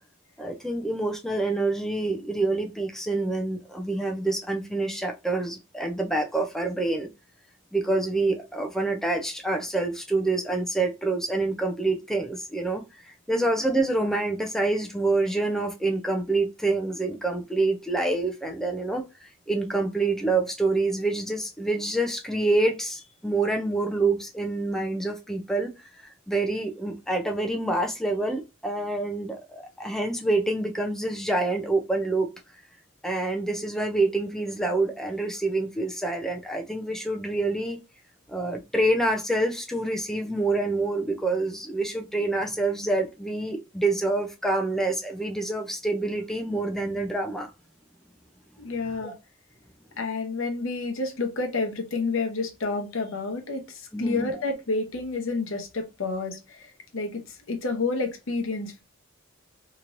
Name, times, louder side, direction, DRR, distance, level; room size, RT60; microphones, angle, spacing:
voice 1, 0.4-7.1 7.7-12.8 13.3-32.3 33.0-37.8 38.3-47.5 49.0-49.1 53.9-54.3, right 2 dB, ahead, 0.4 m, -27 dB
voice 2, 48.6-49.1 50.0-58.8, left 3 dB, 70° left, 0.8 m, -29 dB
3.0 x 2.9 x 2.5 m
head